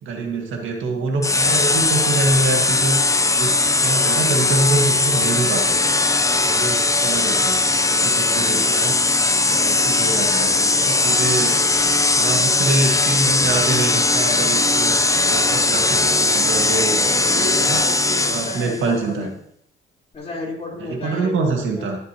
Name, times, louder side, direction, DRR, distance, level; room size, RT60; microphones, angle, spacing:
voice 1, 0.0-3.0 3.3-5.8 6.4-7.6 7.9-8.9 9.5-11.6 12.1-15.0 15.3-17.8 18.3-19.3 20.8-22.0, right 3 dB, 80° right, 2 dB, 1.9 m, -25 dB
sound 1, 1.2-18.8, left 3 dB, 15° left, 0.6 m, -19 dB
voice 2, 6.3-6.8 9.6-10.1 17.2-19.3 20.1-21.9, left 2 dB, 30° left, -4 dB, 4.1 m, -33 dB
18.5 x 6.7 x 3.0 m, 0.69 s
cardioid pair, 90°, 20 cm